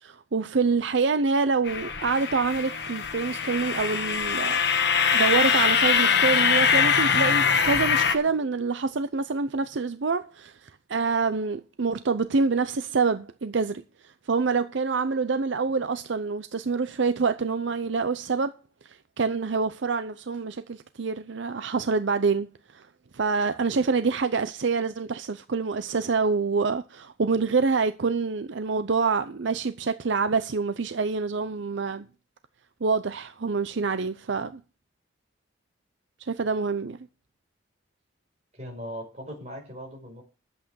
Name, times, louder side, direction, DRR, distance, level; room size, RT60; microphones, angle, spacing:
voice 1, 0.0-4.6 5.1-18.5 18.8-22.9 23.1-32.1 32.8-34.6 36.2-37.0, right 4 dB, 70° right, 0.6 m, -26 dB
sound 1, 1.6-8.1, left 6 dB, 55° left, 1.3 m, -23 dB
voice 2, 38.5-40.2, equal, 35° right, 4.8 m, -39 dB
11.0 x 8.2 x 6.3 m
head